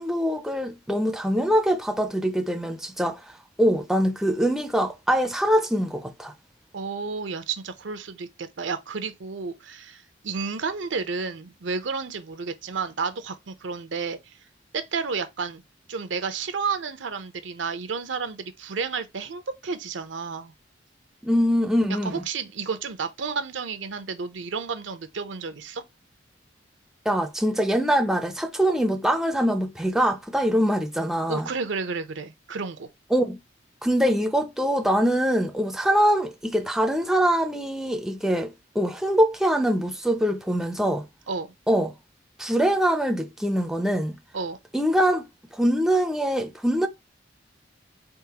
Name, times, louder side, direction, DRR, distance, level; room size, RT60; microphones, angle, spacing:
voice 1, 0.0-3.2 3.6-6.3 21.2-22.2 27.1-31.5 33.1-33.4 33.8-41.1 41.7-41.9 42.4-44.2 44.7-45.2 45.5-46.9, equal, ahead, 0.4 m, -23 dB
voice 2, 6.7-14.4 14.7-15.6 15.9-20.5 22.0-25.8 31.3-32.9 41.3-41.5 44.3-44.6, right 5 dB, 85° right, 0.6 m, -31 dB
3.9 x 3.6 x 2.8 m
head